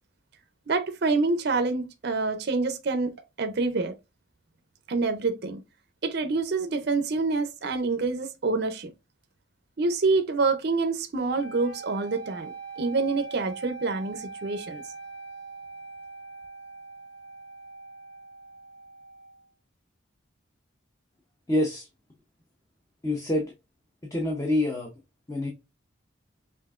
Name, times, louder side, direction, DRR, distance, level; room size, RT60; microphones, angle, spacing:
voice 1, 0.7-3.1 3.4-3.9 4.9-5.6 6.0-8.9 9.8-14.8, right 3 dB, 50° right, 0.5 m, -27 dB
sound 1, 11.4-19.4, right 4 dB, 75° left, 0.8 m, -42 dB
voice 2, 21.5-21.9 23.0-23.5 24.1-24.9 25.3-25.5, left 1 dB, 15° left, 0.6 m, -26 dB
5.6 x 2.5 x 2.4 m
head